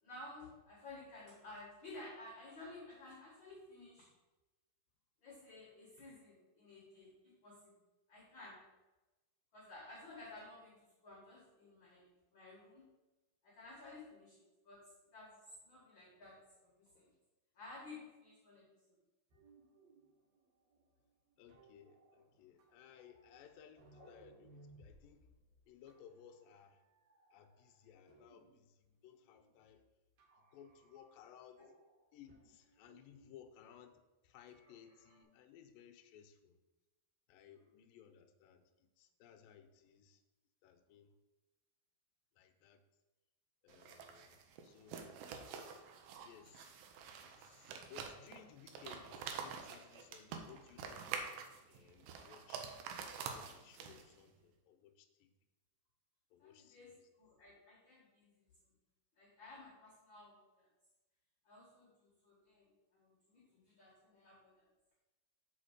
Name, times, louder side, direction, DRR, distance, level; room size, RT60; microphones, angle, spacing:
voice 1, 0.0-4.1 5.2-7.7 8.1-8.6 9.5-12.8 13.4-14.8 15.1-17.1 17.5-18.6 24.0-24.1 31.6-31.7 56.4-58.3 59.2-60.7 61.4-64.6, left 2 dB, 50° left, -4 dB, 1.6 m, -55 dB
sound 1, 19.3-28.7 29.0-29.8 30.2-31.4 31.7-33.3 34.5-35.2, right 2 dB, 60° right, 2.4 m, -66 dB
voice 2, 21.4-25.3 25.7-26.8 27.3-29.8 30.5-31.6 32.1-36.6 37.3-40.2 40.6-41.2 42.4-42.8 43.6-45.2 46.2-46.8 47.2-51.0 51.7-52.8 53.3-55.3 56.3-57.1, left 9 dB, 80° left, 5 dB, 2.3 m, -60 dB
sound 2, 43.7-54.2, right 6 dB, 85° right, 2.7 m, -47 dB
6.4 x 5.0 x 6.5 m, 1.1 s
omnidirectional pair, 4.3 m